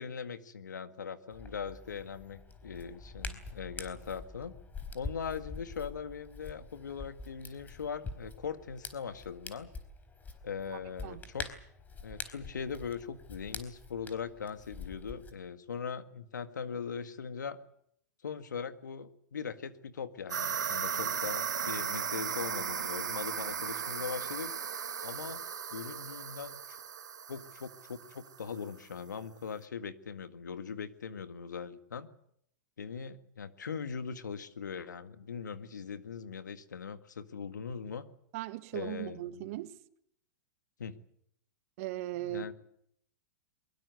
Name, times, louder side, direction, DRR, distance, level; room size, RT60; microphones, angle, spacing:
voice 1, 0.0-4.5 4.9-9.7 10.4-11.5 12.0-17.6 18.2-24.5 25.0-25.4 25.7-26.8 27.3-32.1 32.8-38.1 38.7-39.4 40.8-41.0 42.1-42.5, left 6 dB, 85° left, 1.9 m, -40 dB
Hands, 1.3-15.3, left 3 dB, 20° left, 4.2 m, -46 dB
voice 2, 10.7-11.2 38.3-39.8 41.8-42.5, right 15 dB, 55° right, 1.6 m, -38 dB
sound 1, 20.3-28.5, right 7 dB, 85° right, 1.8 m, -36 dB
23.0 x 22.0 x 8.1 m
hypercardioid pair, 110°, 10 cm